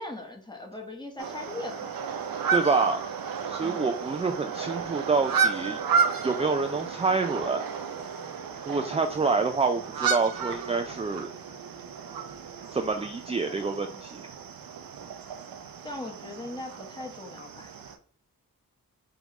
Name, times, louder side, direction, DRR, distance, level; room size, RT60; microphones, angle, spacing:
voice 1, 0.0-1.9 3.6-3.9 15.8-17.7, left 2 dB, 10° left, 1 dB, 1.1 m, -39 dB
sound 1, 1.2-18.0, right 6 dB, 70° right, 0.6 m, -32 dB
voice 2, 2.5-3.0 3.5-5.8 6.2-7.7 8.7-11.3 12.7-14.2, right 4 dB, 20° right, 6 dB, 0.4 m, -27 dB
5.2 x 2.4 x 3.0 m, 0.43 s
cardioid pair, 40°, 36 cm